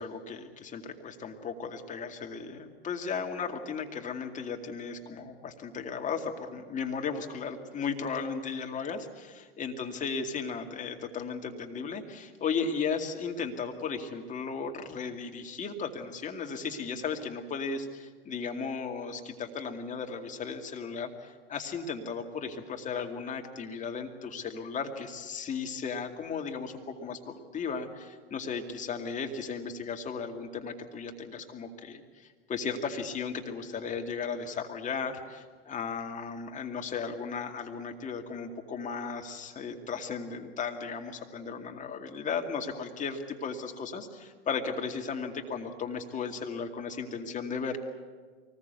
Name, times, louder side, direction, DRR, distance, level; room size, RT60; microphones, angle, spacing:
voice 1, 0.0-47.8, left 5 dB, 25° left, 3 dB, 2.3 m, -35 dB
24.0 x 20.0 x 8.2 m, 1.5 s
hypercardioid pair, 95°, 31 cm